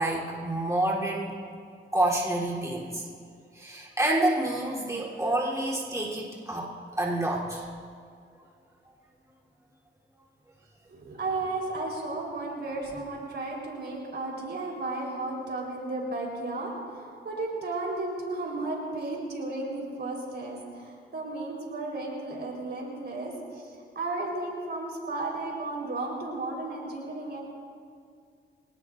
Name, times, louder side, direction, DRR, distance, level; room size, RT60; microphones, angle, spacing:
voice 1, 0.0-1.4 1.9-3.1 3.5-7.7, right 1 dB, 15° right, -5 dB, 3.5 m, -28 dB
voice 2, 10.9-27.4, right 2 dB, 55° right, -2 dB, 4.3 m, -34 dB
24.5 x 19.0 x 2.6 m, 2.2 s
cardioid pair, 70°, 21 cm